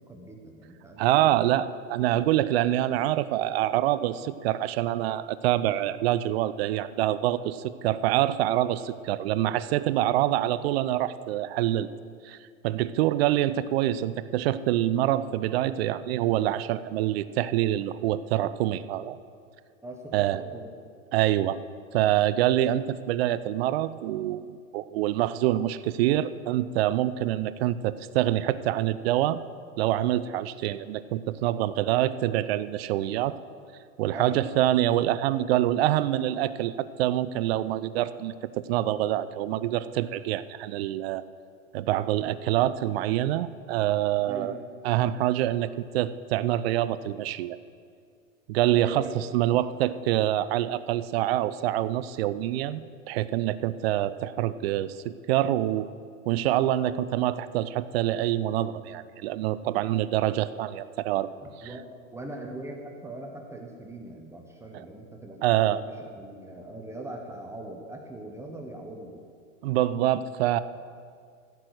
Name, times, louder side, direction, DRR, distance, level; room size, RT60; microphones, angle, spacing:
voice 1, 0.0-1.6 19.8-20.7 34.1-34.4 44.2-44.5 48.7-49.2 61.4-69.3, right 1 dB, 5° right, 1 dB, 1.0 m, -41 dB
voice 2, 1.0-11.9 12.2-12.4 12.6-19.2 20.1-20.4 21.1-21.6 21.9-29.4 29.8-33.4 34.0-38.3 38.7-41.2 41.7-44.6 44.8-47.6 48.5-52.8 53.1-55.9 56.3-61.3 61.6-61.7 64.7-64.9 65.4-65.8 69.6-70.6, right 13 dB, 50° right, 15 dB, 0.6 m, -26 dB
15.0 x 6.2 x 8.0 m, 2.2 s
hypercardioid pair, 130°, 39 cm